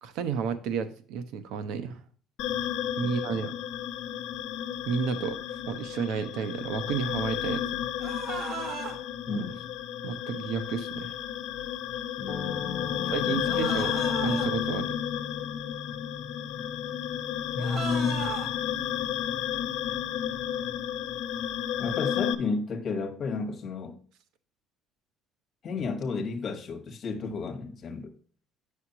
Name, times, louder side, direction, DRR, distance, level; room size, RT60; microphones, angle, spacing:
voice 1, 0.0-2.0 3.0-3.5 4.9-5.4 5.7-7.6 9.3-9.4 10.0-11.1 13.1-15.0, right 6 dB, 75° right, 0.8 m, -31 dB
sound 1, 2.4-22.3, left 10 dB, 65° left, 0.7 m, -32 dB
voice 2, 3.0-3.4 9.3-9.6 12.2-13.7 17.5-18.3 21.8-24.0 25.6-28.1, left 4 dB, 35° left, 1.4 m, -32 dB
sound 2, 8.0-9.0 13.4-14.5 17.6-18.5, right 5 dB, 50° right, 1.4 m, -36 dB
sound 3, 12.3-20.6, left 5 dB, 15° left, 1.5 m, -42 dB
8.5 x 6.4 x 2.8 m
cardioid pair, 170°, 0 cm